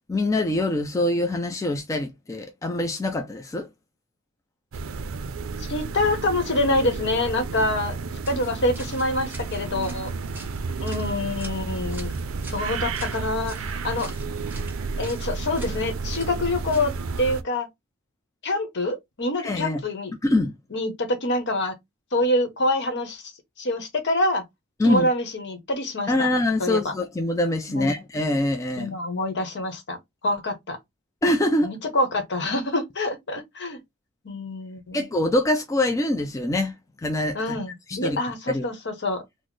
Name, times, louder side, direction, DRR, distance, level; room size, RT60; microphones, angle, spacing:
voice 1, 0.1-3.7 19.4-19.8 20.2-20.6 24.8-25.1 26.1-29.0 31.2-31.7 34.9-36.7 37.0-37.6 37.9-38.2 38.5-38.6, left 1 dB, 15° left, 0.3 m, -24 dB
sound 1, 4.7-17.4, right 4 dB, 70° right, 0.4 m, -32 dB
voice 2, 5.6-8.0 8.3-10.1 10.8-12.1 12.5-14.1 15.0-17.7 18.4-20.1 20.7-21.7 22.1-23.3 23.6-24.4 24.8-26.3 26.6-26.9 27.7-28.0 28.8-30.0 30.2-30.8 31.6-33.8 34.2-35.1 37.3-39.2, left 1 dB, 55° left, 0.9 m, -26 dB
sound 2, 8.2-17.2, right 2 dB, 10° right, 1.5 m, -46 dB
4.0 x 2.0 x 3.1 m
head